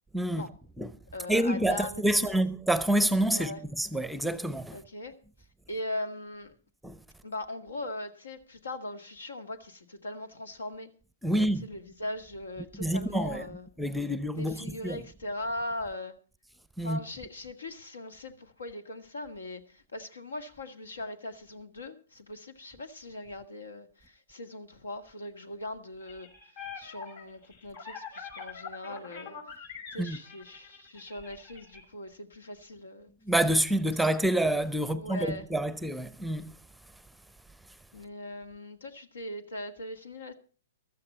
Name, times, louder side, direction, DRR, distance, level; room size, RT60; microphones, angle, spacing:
voice 1, 0.1-0.5 0.8-0.9 1.3-4.8 6.8-7.0 11.2-11.7 12.7-13.4 13.8-15.0 16.8-17.0 30.0-30.2 33.3-36.5, right 1 dB, ahead, 0.7 m, -28 dB
voice 2, 1.1-2.4 3.3-3.6 4.7-5.1 5.7-6.5 7.2-10.9 11.3-13.7 14.3-16.1 16.8-26.3 26.8-29.4 29.9-33.1 34.9-35.5 37.9-40.3, left 1 dB, 75° left, 1.8 m, -40 dB
sound 1, 26.0-31.8, left 6 dB, 60° left, 5.9 m, -44 dB
15.5 x 13.0 x 4.2 m
figure-of-eight pair, 115°, 0 cm